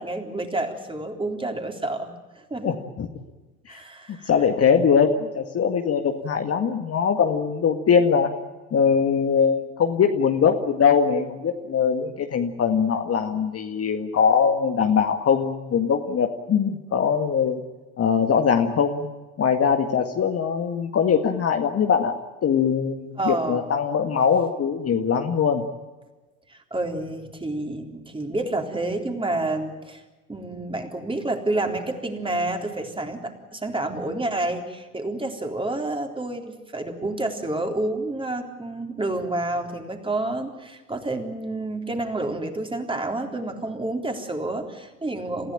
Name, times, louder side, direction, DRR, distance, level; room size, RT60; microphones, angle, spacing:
voice 1, 0.0-2.8 3.7-4.3 23.2-23.8 26.5-30.0 30.3-45.5, right 2 dB, 10° right, 4 dB, 3.8 m, -29 dB
voice 2, 2.6-3.1 3.7-3.8 4.3-8.3 8.7-17.6 18.0-19.1 19.4-22.1 22.4-25.6, left 6 dB, 30° left, 5 dB, 1.9 m, -21 dB
29.5 x 15.5 x 9.1 m, 1.2 s
figure-of-eight pair, 70°, 47 cm